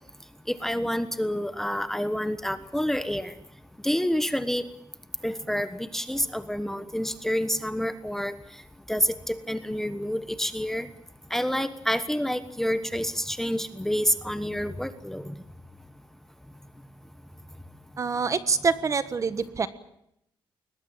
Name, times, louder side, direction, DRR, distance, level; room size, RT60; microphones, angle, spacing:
voice 1, 0.5-3.3 3.8-4.6 5.2-8.3 8.9-10.9 11.3-15.3, equal, 5° left, 11 dB, 1.2 m, -28 dB
voice 2, 18.0-19.7, right 5 dB, 35° right, 13 dB, 1.5 m, -26 dB
21.0 x 20.5 x 9.0 m, 0.77 s
cardioid pair, 140°, 9 cm